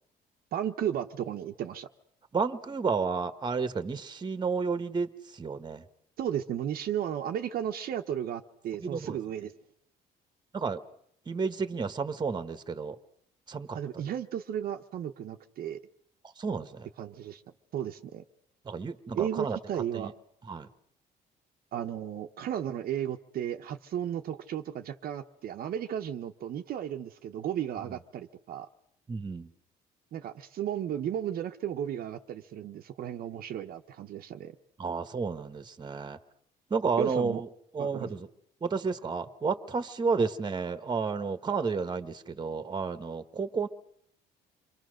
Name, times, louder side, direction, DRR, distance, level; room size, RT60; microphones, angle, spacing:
voice 1, 0.5-1.9 6.2-9.5 13.7-15.8 17.0-17.4 17.7-18.2 19.1-20.2 21.7-28.7 30.1-34.5 37.0-37.4 37.8-38.1, right 10 dB, 60° right, 4 dB, 1.0 m, -34 dB
voice 2, 2.3-5.8 8.8-9.2 10.5-10.8 11.3-13.0 13.5-13.8 16.4-16.9 18.6-19.6 19.9-20.1 20.5-20.7 27.9-28.0 29.1-29.5 34.8-36.2 36.7-37.5 37.7-38.3 38.6-43.7, right 5 dB, 25° right, 11 dB, 1.3 m, -31 dB
29.0 x 23.5 x 6.4 m, 0.70 s
cardioid pair, 110°, 17 cm